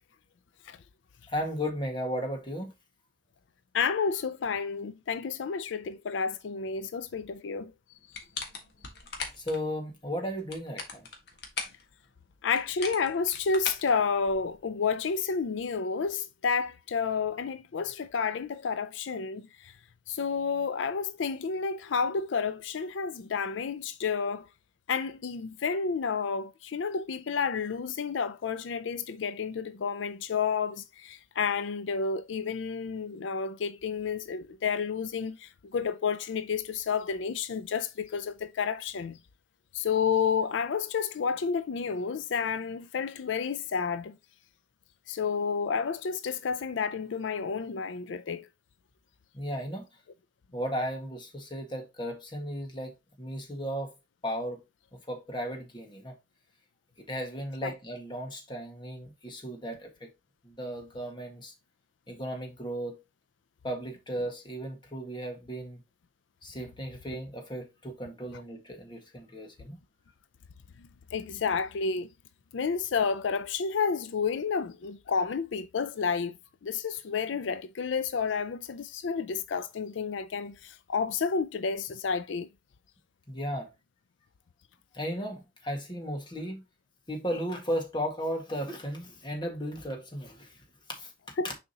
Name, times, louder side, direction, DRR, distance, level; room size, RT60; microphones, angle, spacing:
voice 1, 1.3-2.7 9.4-11.1 49.3-49.8 50.5-53.9 54.2-54.6 55.1-56.1 57.0-60.1 60.4-61.5 62.1-63.0 63.6-65.8 66.4-69.8 83.3-83.7 84.9-86.6 87.1-90.5 90.9-91.1 91.4-91.5, equal, 25° left, 1.7 m, -35 dB
voice 2, 3.7-7.7 12.4-19.7 20.1-24.5 24.9-39.2 39.7-44.2 45.1-48.5 57.6-57.7 71.1-72.1 72.5-76.4 76.6-82.5 91.4-91.5, left 5 dB, 85° left, 0.4 m, -30 dB
sound 1, 8.1-9.6 10.3-11.8 12.6-14.6, left 5 dB, 60° left, 1.6 m, -38 dB
6.6 x 5.0 x 2.8 m
head